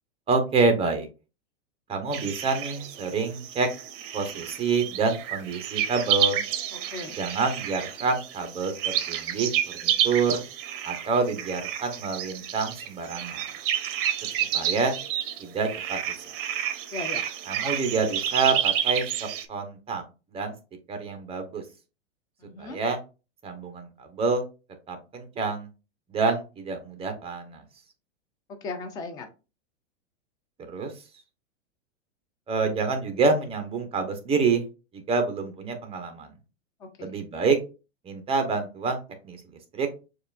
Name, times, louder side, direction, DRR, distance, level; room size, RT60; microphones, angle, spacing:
voice 1, 0.3-1.1 1.9-3.7 4.1-6.4 7.2-9.5 9.8-10.4 10.8-13.4 14.5-15.0 15.4-16.0 17.5-19.1 19.5-20.0 20.3-20.5 20.9-21.6 22.6-23.0 23.4-24.4 24.9-25.7 26.1-27.6 30.7-30.9 32.5-34.6 34.9-36.3 37.0-37.6 38.0-39.4 39.7-39.9, right 4 dB, 15° right, 6 dB, 0.8 m, -27 dB
sound 1, 2.1-19.5, right 10 dB, 50° right, 0.7 m, -30 dB
voice 2, 6.7-7.2 16.9-17.2 22.4-22.8 28.5-29.3 36.8-37.1, left 3 dB, 10° left, 5 dB, 0.3 m, -37 dB
6.5 x 2.5 x 2.4 m, 0.31 s
hypercardioid pair, 135°, 36 cm